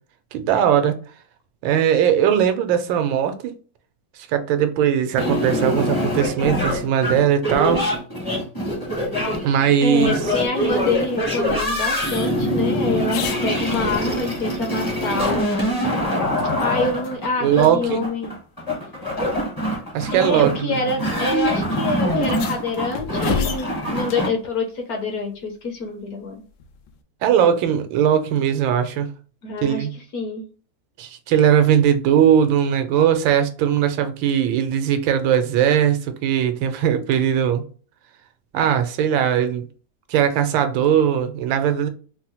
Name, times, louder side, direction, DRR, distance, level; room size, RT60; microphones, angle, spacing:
voice 1, 0.3-1.0 1.6-3.5 4.3-7.9 9.4-10.3 17.4-18.0 19.9-20.8 27.2-29.1 29.6-29.9 31.0-37.6 38.5-39.7 40.1-41.9, right 9 dB, 90° right, 1.4 m, -19 dB
sound 1, 5.2-24.3, equal, 25° left, 0.5 m, -24 dB
voice 2, 9.8-15.9 16.6-18.3 20.1-26.3 29.4-29.9 30.1-30.4, left 3 dB, 65° left, 1.0 m, -26 dB
sound 2, 11.5-14.4 14.8-14.9 15.3-16.7 17.0-17.2 17.6-17.7 18.8-18.9 19.8-20.1 21.1-21.2 21.4-21.5 22.1-24.3 26.6-27.0, left 7 dB, 85° left, 1.3 m, -33 dB
4.3 x 2.0 x 2.9 m
omnidirectional pair, 2.1 m